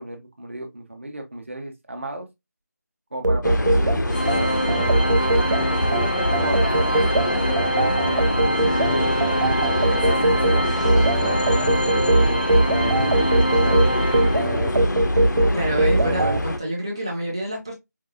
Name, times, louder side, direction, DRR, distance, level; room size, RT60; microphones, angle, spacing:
voice 1, 0.0-2.3 3.1-5.2 5.6-9.2 9.7-12.8 13.3-13.8, right 1 dB, 45° right, 0.9 m, -35 dB
sound 1, 3.2-16.4, right 1 dB, 85° right, 0.6 m, -21 dB
sound 2, 3.4-16.6, left 1 dB, 85° left, 0.7 m, -26 dB
Organ, 4.1-14.9, right 1 dB, 35° left, 0.4 m, -26 dB
voice 2, 15.5-17.7, right 1 dB, 15° right, 0.7 m, -27 dB
4.6 x 2.1 x 2.3 m
figure-of-eight pair, 180°, 10 cm